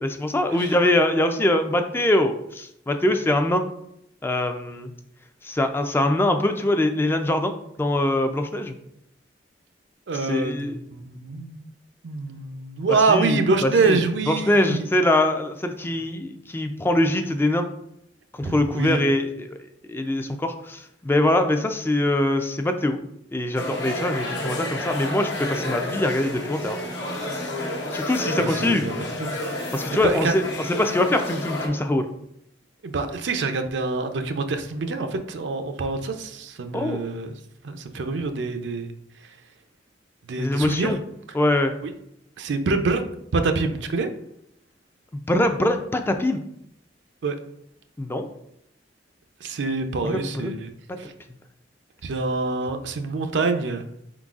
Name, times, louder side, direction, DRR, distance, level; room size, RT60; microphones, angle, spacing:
voice 1, 0.0-3.6 4.2-4.9 5.4-7.5 7.8-8.7 10.1-10.8 12.9-14.0 14.3-17.6 18.4-19.6 19.9-23.0 23.3-26.8 27.9-28.8 29.7-32.1 36.7-37.0 40.4-41.0 41.3-41.7 45.3-46.4 48.0-48.3 50.0-50.5, left 1 dB, 15° left, 6 dB, 0.3 m, -23 dB
voice 2, 10.1-11.7 12.0-14.9 18.4-19.0 28.4-29.3 30.0-30.3 32.8-37.4 37.6-38.9 40.3-40.9 41.8-41.9 42.4-43.0 43.3-44.1 47.2-47.4 49.4-50.7 51.0-51.1 52.0-53.9, right 3 dB, 80° right, 7 dB, 0.5 m, -25 dB
sound 1, 23.6-31.7, left 1 dB, 75° left, 1.0 m, -30 dB
4.5 x 3.9 x 2.4 m, 0.77 s
head